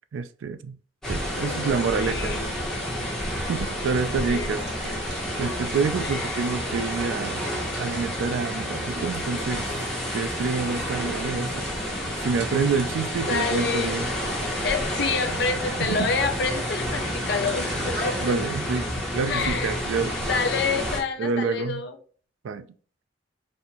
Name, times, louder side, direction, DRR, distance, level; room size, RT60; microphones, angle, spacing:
voice 1, 0.1-0.8 1.1-2.4 3.5-5.0 5.4-7.5 7.8-9.8 10.1-11.6 12.2-14.1 15.8-16.1 18.2-18.9 19.1-20.3 21.2-21.8 22.4-22.6, right 5 dB, 85° right, 0.3 m, -28 dB
sound 1, 1.0-21.0, equal, 5° left, 1.2 m, -30 dB
voice 2, 1.3-2.5 4.3-5.0 6.0-6.4 13.3-13.9 14.6-18.2 19.3-19.8 20.3-22.0, left 4 dB, 60° left, 0.6 m, -28 dB
sound 2, 2.2-18.3, right 2 dB, 60° right, 0.8 m, -41 dB
4.2 x 2.6 x 2.9 m
head